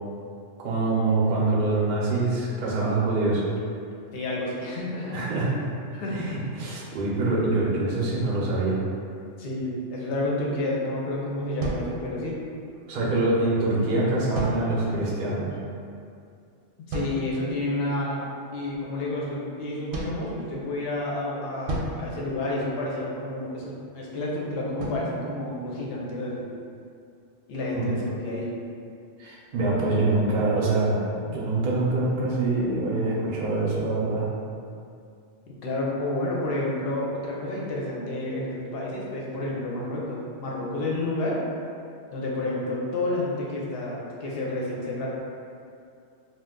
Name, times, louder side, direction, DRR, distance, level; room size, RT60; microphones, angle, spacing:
voice 1, 0.6-3.4 5.1-5.6 6.1-8.8 12.9-15.5 27.7-27.9 29.2-34.3, right 2 dB, 55° right, -5 dB, 0.7 m, -25 dB
voice 2, 4.1-5.2 5.9-6.3 9.4-12.4 16.9-18.2 18.5-26.5 27.5-28.5 35.5-41.4 42.1-45.1, left 2 dB, 60° left, -4 dB, 0.7 m, -30 dB
sound 1, 11.6-12.7 14.3-15.2 16.9-17.6 19.9-21.0 21.7-23.1 24.8-26.3, right 1 dB, 85° right, 0.9 m, -35 dB
2.4 x 2.2 x 3.6 m, 2.4 s
omnidirectional pair, 1.3 m